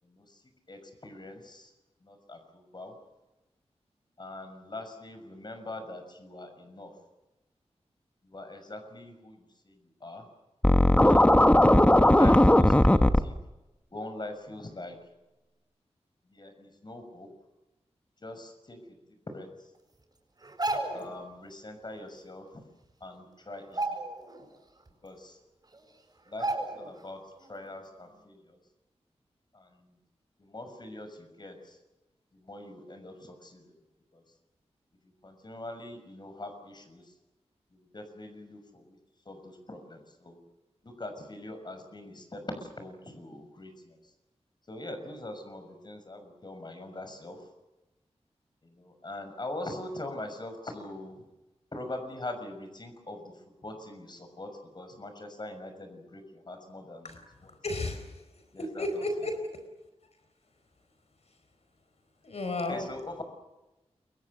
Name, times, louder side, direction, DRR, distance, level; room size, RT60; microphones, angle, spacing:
voice 1, 0.0-0.4 0.7-1.7 2.0-2.9 4.2-6.9 8.2-10.3 11.0-11.5 11.9-13.3 13.9-15.0 16.3-17.3 18.2-19.7 20.9-22.5 23.0-24.0 25.0-25.4 26.3-27.2 27.5-28.6 29.5-30.0 30.4-31.8 32.3-33.7 34.1-34.2 35.0-37.1 37.7-39.0 39.2-40.4 40.8-44.1 44.7-47.5 48.6-51.2 51.7-57.1 57.4-57.5 58.5-59.0 62.7-63.2, left 2 dB, 40° left, 7 dB, 6.2 m, -42 dB
Scratching (performance technique), 10.6-13.2, left 1 dB, 10° left, 1.2 m, -18 dB
sound 1, 20.4-21.1 22.6-22.7 23.0-23.2 23.6-24.5 24.9-25.0 25.7-25.8 26.4-27.0 27.4-27.5, right 2 dB, 35° right, 7.3 m, -33 dB
voice 2, 57.4-58.2 58.6-59.5 62.2-62.9, left 2 dB, 70° left, 6 dB, 4.5 m, -33 dB
29.0 x 24.0 x 6.7 m, 1.0 s
wide cardioid pair, 105°, 11 cm